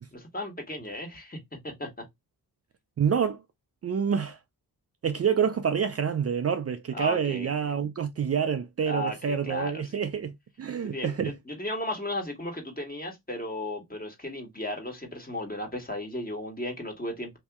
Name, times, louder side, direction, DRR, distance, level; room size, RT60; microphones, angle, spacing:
voice 1, 0.1-1.4 1.6-1.9 6.9-7.7 8.9-9.9 10.8-17.4, left 1 dB, 25° left, 1.4 m, -35 dB
voice 2, 3.0-3.4 3.8-4.4 5.0-11.3, right 7 dB, 40° right, 0.4 m, -27 dB
2.9 x 2.7 x 3.5 m
cardioid pair, 70°, 38 cm